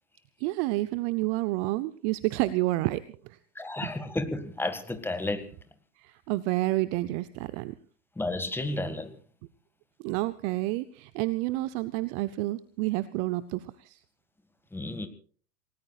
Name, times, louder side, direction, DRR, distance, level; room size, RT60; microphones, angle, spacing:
voice 1, 0.4-3.4 3.8-3.9 6.0-7.7 10.0-14.0, right 18 dB, 30° right, 15 dB, 0.7 m, -29 dB
voice 2, 3.5-5.5 8.2-9.1 14.7-15.1, left 2 dB, 5° left, 9 dB, 1.8 m, -32 dB
28.5 x 18.5 x 2.4 m, 0.43 s
hypercardioid pair, 115°, 47 cm